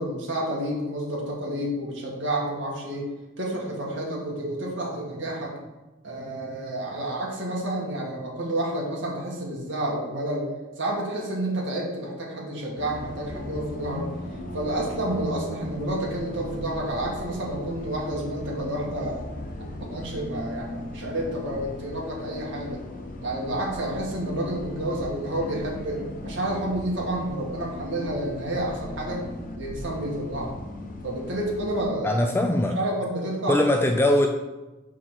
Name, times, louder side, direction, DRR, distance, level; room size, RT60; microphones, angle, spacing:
voice 1, 0.0-3.1 3.4-5.5 6.0-10.4 10.8-14.1 14.5-19.2 19.9-22.8 23.2-29.2 29.5-30.6 31.0-32.2 32.7-33.6, right 1 dB, 65° right, -3 dB, 2.0 m, -30 dB
Bus, 12.8-31.9, left 1 dB, 45° left, 1.1 m, -37 dB
voice 2, 32.0-32.8 33.5-34.3, left 1 dB, 10° left, 3 dB, 0.4 m, -21 dB
5.9 x 5.0 x 5.9 m, 1.1 s
head